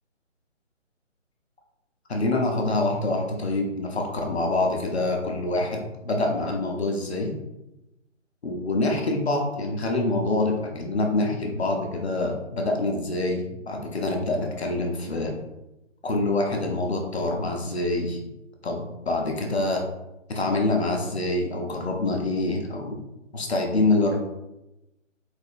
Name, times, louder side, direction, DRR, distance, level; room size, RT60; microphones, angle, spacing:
voice 1, 2.1-7.3 8.4-15.3 16.0-18.2 18.6-19.8 20.3-23.0 23.3-24.2, left 2 dB, 55° left, 1 dB, 0.9 m, -26 dB
5.0 x 3.7 x 2.6 m, 0.95 s
figure-of-eight pair, 150°, 38 cm